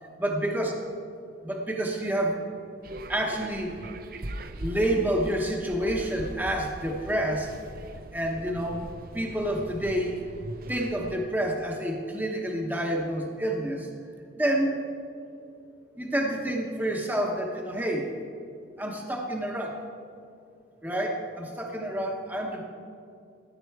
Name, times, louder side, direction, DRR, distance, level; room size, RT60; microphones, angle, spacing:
voice 1, 0.0-0.7 1.4-2.4 3.1-3.8 4.6-7.5 8.1-8.8 9.1-10.2 10.7-13.9 14.3-14.8 16.0-18.1 18.8-19.8 20.8-22.6, right 1 dB, 10° right, 0 dB, 0.9 m, -28 dB
sound 1, 2.8-11.1, right 1 dB, 50° right, 0.6 m, -41 dB
15.0 x 10.5 x 4.7 m, 2.5 s
head